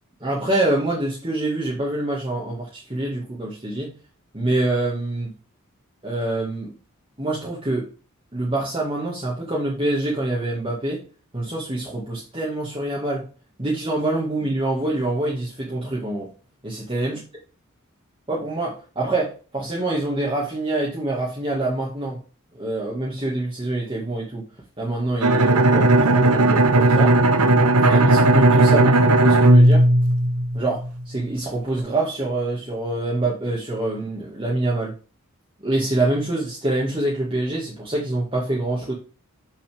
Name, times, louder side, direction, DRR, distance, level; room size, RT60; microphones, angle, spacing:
voice 1, 0.2-3.9 4.3-5.3 6.0-6.7 7.2-7.9 8.3-11.0 11.3-13.3 13.6-16.3 16.6-17.2 18.3-22.2 22.5-24.5 24.8-27.2 27.8-29.8 30.5-34.9 35.6-38.9, right 2 dB, 25° right, -5 dB, 1.9 m, -25 dB
Bowed string instrument, 25.2-30.9, right 2 dB, 90° right, 1.0 m, -16 dB
7.1 x 6.1 x 3.5 m, 0.35 s
head